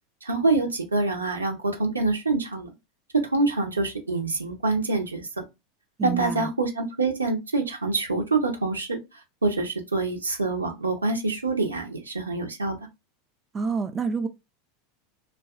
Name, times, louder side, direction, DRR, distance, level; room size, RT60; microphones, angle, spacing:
voice 1, 0.2-2.7 3.1-5.3 6.0-9.0 9.4-12.8, right 3 dB, 90° right, 0.6 m, -26 dB
voice 2, 6.0-6.5 13.5-14.3, right 5 dB, 25° right, 0.4 m, -28 dB
2.6 x 2.3 x 2.4 m
figure-of-eight pair, 85°, 0 cm